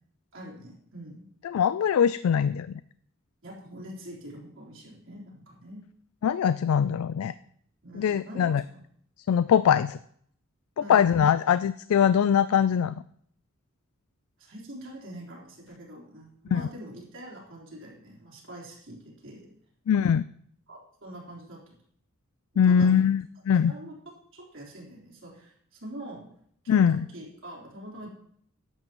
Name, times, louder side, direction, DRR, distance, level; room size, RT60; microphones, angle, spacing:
voice 1, 0.3-1.3 3.4-5.8 7.8-8.8 10.8-11.2 14.4-19.5 20.7-21.6 22.7-23.0 23.7-23.9 24.3-26.3 26.6-28.1, right 1 dB, 65° right, -3 dB, 3.9 m, -44 dB
voice 2, 1.4-2.7 6.2-7.3 7.9-8.6 9.3-10.0 10.8-13.0 16.5-16.6 19.9-20.2 22.6-23.7 26.7-27.0, left 8 dB, 90° left, 15 dB, 0.3 m, -22 dB
14.5 x 11.0 x 3.0 m, 0.65 s
head